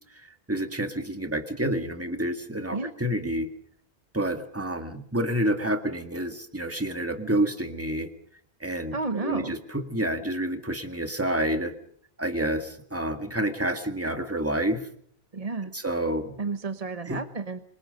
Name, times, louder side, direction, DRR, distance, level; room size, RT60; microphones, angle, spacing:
voice 1, 0.2-3.5 4.1-8.1 8.6-11.7 12.2-14.9 15.7-16.4 17.1-17.2, right 1 dB, 10° right, 7 dB, 1.8 m, -29 dB
voice 2, 8.9-9.5 15.3-15.7 16.4-17.6, right 3 dB, 35° right, 9 dB, 1.1 m, -31 dB
27.5 x 21.5 x 5.3 m, 0.64 s
omnidirectional pair, 1.1 m